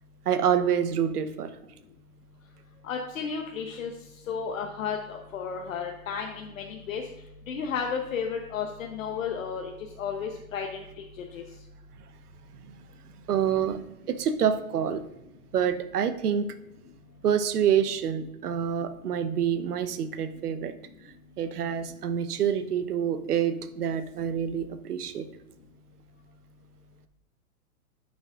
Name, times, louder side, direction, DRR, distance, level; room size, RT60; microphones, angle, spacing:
voice 1, 0.3-1.5 13.3-13.8 14.1-15.0 15.5-16.5 17.2-20.7 21.4-25.3, right 8 dB, 85° right, 11 dB, 0.9 m, -27 dB
voice 2, 2.8-3.9 4.3-7.0 7.5-9.7 10.0-10.7 11.3-11.4, left 6 dB, 60° left, 2 dB, 1.0 m, -32 dB
11.0 x 6.1 x 2.5 m, 0.91 s
hypercardioid pair, 165°, 45 cm